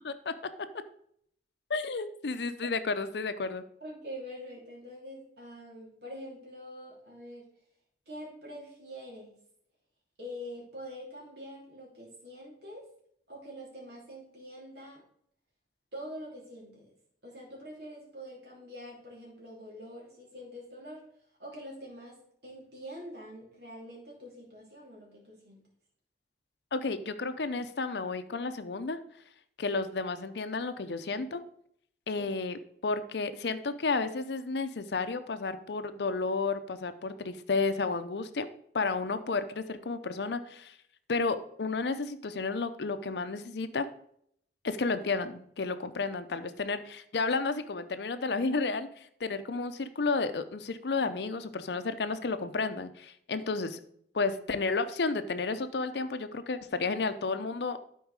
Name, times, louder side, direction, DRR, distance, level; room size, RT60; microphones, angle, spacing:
voice 1, 1.7-3.6 26.7-29.0 29.6-31.4 32.1-38.5 38.7-40.7 41.1-43.9 44.6-48.9 49.2-53.8 54.1-57.8, left 4 dB, 70° left, 10 dB, 0.6 m, -32 dB
voice 2, 3.8-7.5 8.1-9.4 10.2-12.9 13.3-15.0 15.9-16.9 17.2-21.0 21.4-25.7 32.1-32.3, equal, 70° right, -3 dB, 2.9 m, -45 dB
11.5 x 4.6 x 4.7 m, 0.67 s
head